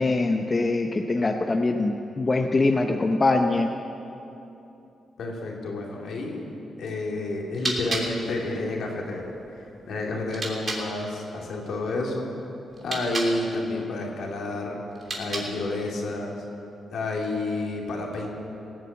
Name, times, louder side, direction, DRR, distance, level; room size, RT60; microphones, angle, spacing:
voice 1, 0.0-3.7, left 2 dB, 35° left, 4 dB, 0.8 m, -23 dB
voice 2, 5.2-6.4 6.8-12.3 12.8-14.8 15.2-16.4 16.9-18.3, left 2 dB, 75° left, -1 dB, 2.7 m, -30 dB
sound 1, 7.3-10.9 12.7-13.4 14.9-15.7, right 2 dB, 45° right, 3.1 m, -34 dB
18.0 x 7.7 x 8.5 m, 2.9 s
cardioid pair, 60°, 0 cm